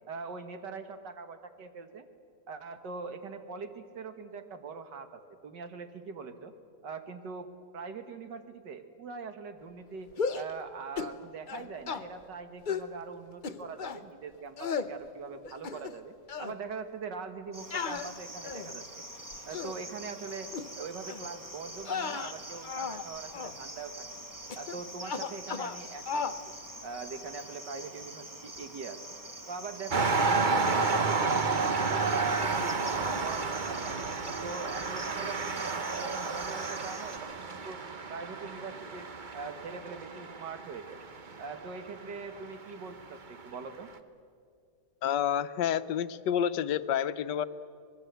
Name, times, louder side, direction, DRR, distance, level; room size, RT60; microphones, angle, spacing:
voice 1, 0.1-2.1 2.5-6.5 6.8-19.0 19.5-24.2 24.6-26.4 26.8-29.0 29.5-32.7 33.0-34.0 34.2-37.8 38.1-41.0 41.4-43.9, right 4 dB, 85° right, 8 dB, 2.2 m, -42 dB
sound 1, 10.1-10.5 11.0-11.2 11.5-12.0 12.7-12.9 13.4-14.0 14.6-14.9 15.4-16.0 16.3-16.5 17.7-18.8 19.3-19.8 20.5-20.7 21.1-21.3 21.8-23.0 23.3-23.6 24.5-24.8 25.0-25.8 26.1-26.4, left 5 dB, 45° left, 0.6 m, -35 dB
Cricket, 17.5-37.2, right 1 dB, 10° right, 1.2 m, -45 dB
sound 2, 29.9-42.7 43.4-43.5, right 4 dB, 35° right, 0.9 m, -31 dB
voice 2, 45.0-47.5, left 9 dB, 85° left, 13 dB, 1.4 m, -29 dB
25.5 x 20.0 x 8.1 m, 2.2 s
omnidirectional pair, 1.8 m